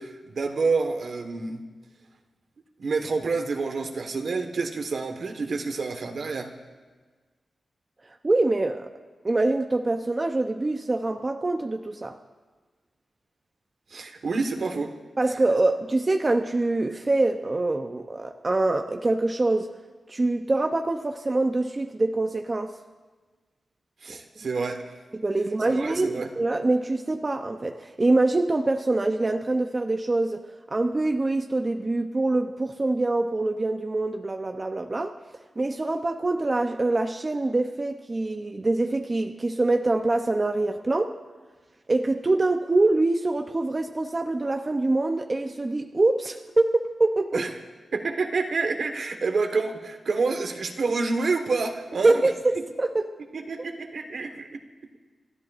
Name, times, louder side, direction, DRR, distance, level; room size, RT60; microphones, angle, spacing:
voice 1, 0.0-1.6 2.8-6.5 13.9-14.9 24.0-24.8 25.7-26.3 47.3-47.5 47.9-52.2 53.3-54.6, right 4 dB, 65° right, 5 dB, 1.3 m, -28 dB
voice 2, 8.2-8.9 9.2-12.2 15.2-19.7 20.1-22.7 25.1-30.5 30.7-35.2 35.6-41.2 41.9-47.4 52.0-53.1, right 2 dB, 30° right, 5 dB, 0.6 m, -24 dB
29.5 x 13.5 x 2.5 m, 1.4 s
wide cardioid pair, 95°, 0 cm